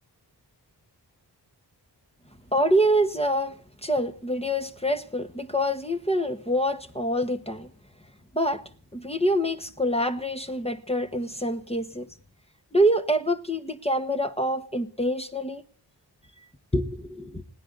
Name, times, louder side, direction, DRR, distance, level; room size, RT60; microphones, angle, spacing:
voice 1, 2.5-3.6 3.8-7.7 8.3-8.6 8.9-12.1 12.7-15.6 16.7-17.4, equal, 15° left, 1.6 m, -26 dB
20.5 x 17.0 x 4.1 m
cardioid pair, 45°, 43 cm